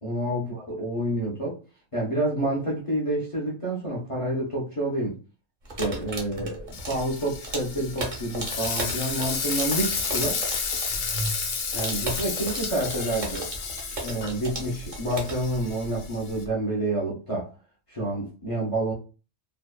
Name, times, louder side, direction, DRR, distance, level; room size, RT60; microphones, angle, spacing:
voice 1, 0.0-1.6 1.9-5.2 5.8-10.4 11.7-13.5 14.0-17.5 17.9-18.9, right 1 dB, 45° left, 0.4 m, -28 dB
sound 1, 5.7-16.5, right 2 dB, 45° right, 0.6 m, -35 dB
Frying (food), 6.7-16.4, left 5 dB, 65° left, 0.8 m, -32 dB
2.7 x 2.2 x 2.2 m
omnidirectional pair, 1.4 m